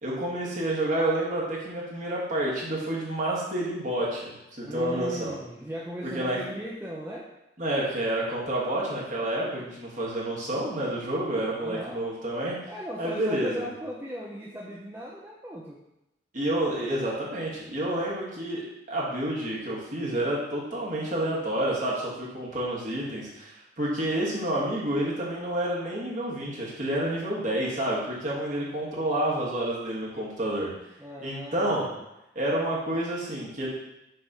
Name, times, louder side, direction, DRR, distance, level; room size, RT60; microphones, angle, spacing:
voice 1, 0.0-5.3 6.1-6.4 7.6-12.6 13.0-13.6 16.3-18.6 18.9-30.7 31.2-31.9 32.4-33.7, right 1 dB, 40° right, -5 dB, 1.8 m, -29 dB
voice 2, 4.6-7.3 11.6-12.0 12.7-15.8 31.0-32.0, equal, 10° right, -4 dB, 0.5 m, -37 dB
6.5 x 3.2 x 5.5 m, 0.89 s
head